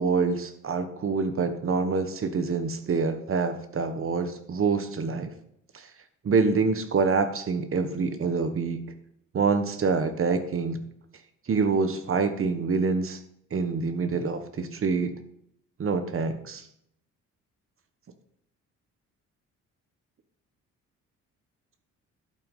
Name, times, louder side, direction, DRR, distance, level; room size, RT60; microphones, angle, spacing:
voice 1, 0.0-5.3 5.7-5.9 6.2-8.9 9.3-10.8 11.5-13.2 13.5-15.2 15.8-16.6, right 4 dB, 45° right, 9 dB, 1.3 m, -26 dB
11.5 x 6.0 x 5.5 m, 0.73 s
cardioid pair, 90°, 30 cm